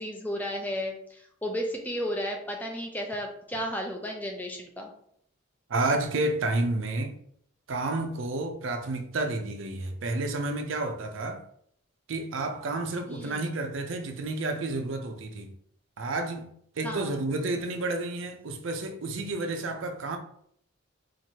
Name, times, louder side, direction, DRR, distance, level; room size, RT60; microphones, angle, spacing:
voice 1, 0.0-4.9 13.1-13.4 16.8-17.2, equal, 10° left, 0.5 m, -33 dB
voice 2, 5.7-7.2 7.7-11.4 12.1-15.5 16.0-16.5 16.8-20.2, right 2 dB, 75° right, 0.5 m, -30 dB
4.4 x 2.5 x 2.8 m
head